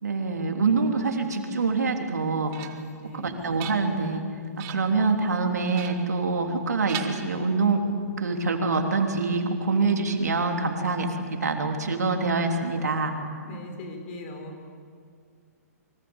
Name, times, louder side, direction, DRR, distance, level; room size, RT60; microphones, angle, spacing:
voice 1, 0.0-2.5 3.1-4.2 4.6-7.8 8.2-13.1, right 4 dB, 80° right, 3 dB, 3.3 m, -25 dB
sound 1, 2.0-3.0 3.4-4.2 4.6-5.0 5.7-6.6 6.9-7.8, right 10 dB, 35° right, 2.1 m, -40 dB
voice 2, 2.9-3.4 4.6-4.7 13.4-14.5, left 2 dB, 45° left, 5 dB, 5.2 m, -40 dB
25.0 x 24.0 x 7.2 m, 2.1 s
hypercardioid pair, 125°, 9 cm